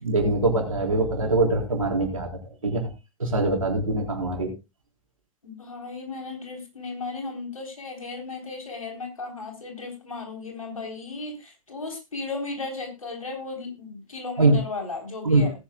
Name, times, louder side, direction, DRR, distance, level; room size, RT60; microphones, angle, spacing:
voice 1, 0.0-2.9 3.2-4.5 14.4-14.6 15.2-15.5, right 2 dB, 75° right, 1 dB, 4.0 m, -23 dB
voice 2, 5.4-15.5, left 3 dB, 75° left, 3 dB, 3.6 m, -35 dB
18.5 x 10.0 x 2.2 m, 0.26 s
figure-of-eight pair, 95°, 18 cm